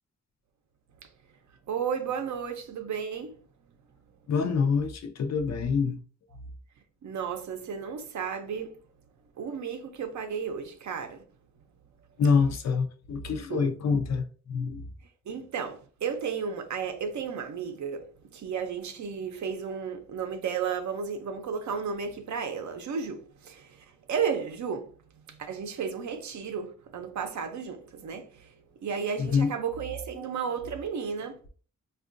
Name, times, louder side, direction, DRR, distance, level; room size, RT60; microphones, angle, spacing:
voice 1, 1.7-3.4 7.0-8.8 9.4-11.2 13.5-13.7 15.3-18.1 18.3-23.8 24.1-24.9 25.3-28.5 28.8-31.4, right 6 dB, 70° right, 0.6 m, -33 dB
voice 2, 4.3-6.0 12.2-14.9 29.2-29.5, left 5 dB, 60° left, 0.5 m, -26 dB
4.4 x 2.3 x 2.5 m
wide cardioid pair, 180°, 30 cm